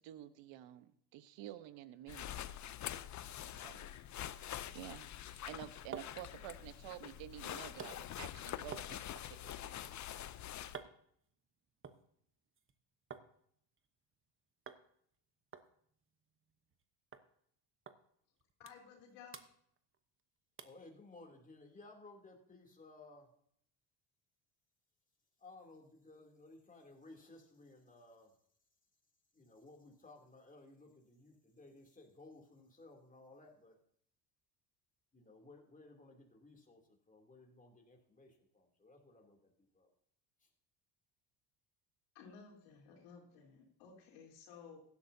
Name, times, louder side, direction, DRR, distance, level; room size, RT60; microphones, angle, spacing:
voice 1, 0.0-2.5 3.5-3.9 4.7-10.0, right 13 dB, 65° right, 13 dB, 1.1 m, -51 dB
sound 1, 2.1-10.8, left 11 dB, 40° left, 0.6 m, -46 dB
sound 2, 5.7-13.3 13.6-14.3 14.7-14.9 15.1-15.2 15.5-16.8 17.1-17.3 17.9-18.0 18.4-19.0 19.3-20.2 20.6-20.9 21.4-21.5, right 6 dB, 25° right, 1.0 m, -54 dB
voice 2, 18.6-19.4 42.1-44.8, left 6 dB, 85° left, -2 dB, 3.5 m, -56 dB
voice 3, 20.6-23.3 25.4-28.4 29.3-33.7 35.1-39.9 40.4-40.5, left 2 dB, 15° left, 1 dB, 2.9 m, -58 dB
16.0 x 12.0 x 2.7 m, 0.68 s
supercardioid pair, 100°, 48 cm